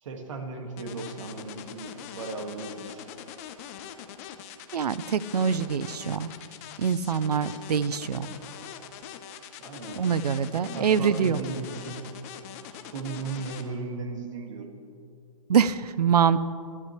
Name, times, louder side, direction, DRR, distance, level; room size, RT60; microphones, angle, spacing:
voice 1, 0.0-3.1 9.6-10.0 10.5-12.0 12.7-14.7, right 4 dB, 50° right, 3 dB, 2.2 m, -37 dB
sound 1, 0.8-13.6, left 10 dB, 25° left, 0.7 m, -42 dB
voice 2, 4.7-6.3 6.8-8.3 10.0-11.4 15.5-16.4, right 7 dB, 80° right, 16 dB, 0.7 m, -24 dB
25.0 x 13.0 x 3.3 m, 2.4 s
hypercardioid pair, 160°, 20 cm